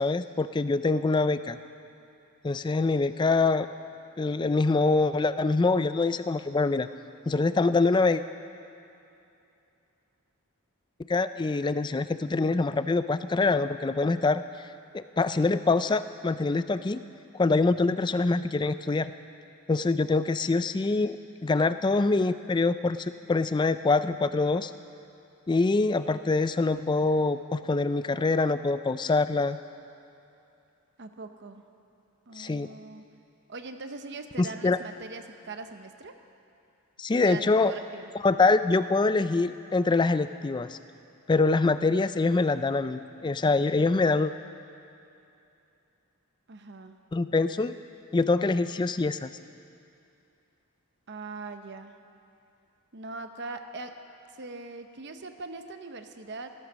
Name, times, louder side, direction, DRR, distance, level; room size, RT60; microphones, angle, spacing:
voice 1, 0.0-1.6 2.4-3.7 4.2-6.9 7.3-8.2 11.1-14.4 14.9-17.0 17.3-19.1 19.7-21.2 21.4-24.7 25.5-29.6 32.4-32.7 34.4-34.8 37.0-37.7 38.2-40.8 41.3-44.3 47.1-47.7 48.1-49.3, left 3 dB, 20° left, 12 dB, 0.3 m, -25 dB
voice 2, 31.0-31.6 32.3-33.1 33.5-36.2 37.2-38.1 46.5-47.0 51.1-51.9 52.9-53.9 54.3-56.5, right 3 dB, 50° right, 7 dB, 0.8 m, -41 dB
15.0 x 13.0 x 6.2 m, 2.7 s
head